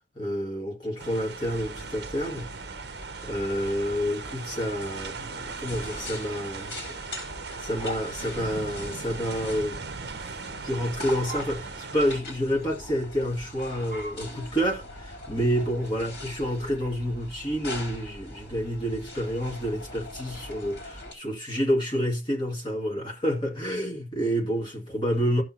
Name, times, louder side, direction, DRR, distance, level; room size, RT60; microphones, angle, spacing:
voice 1, 0.2-2.5 3.2-7.0 7.6-9.8 10.2-25.4, equal, 25° left, 2.2 m, -29 dB
sound 1, 1.0-12.2, right 4 dB, 60° right, 0.8 m, -39 dB
sound 2, 1.4-21.1, left 1 dB, 55° left, 3.7 m, -42 dB
15.0 x 6.2 x 2.9 m
head